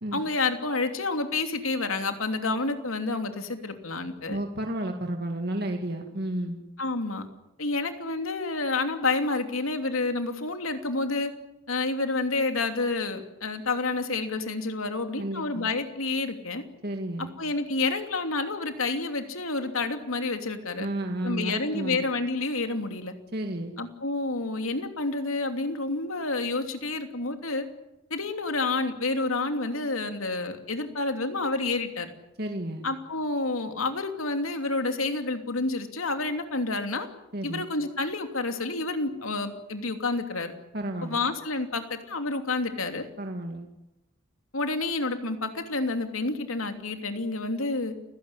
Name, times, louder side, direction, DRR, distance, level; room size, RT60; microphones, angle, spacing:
voice 1, 0.1-4.4 6.8-7.3 7.6-11.3 11.7-16.6 17.4-20.9 21.2-23.1 23.8-27.7 28.1-32.1 32.8-37.1 37.4-40.5 41.0-43.0 44.5-47.9, left 3 dB, 90° left, 6 dB, 2.9 m, -29 dB
voice 2, 4.3-6.6 15.2-15.6 16.8-17.3 20.8-22.1 23.3-23.8 32.4-32.9 37.3-37.7 40.7-41.2 43.2-43.7, right 1 dB, 50° right, 4 dB, 2.2 m, -32 dB
29.5 x 16.0 x 10.0 m, 0.92 s
head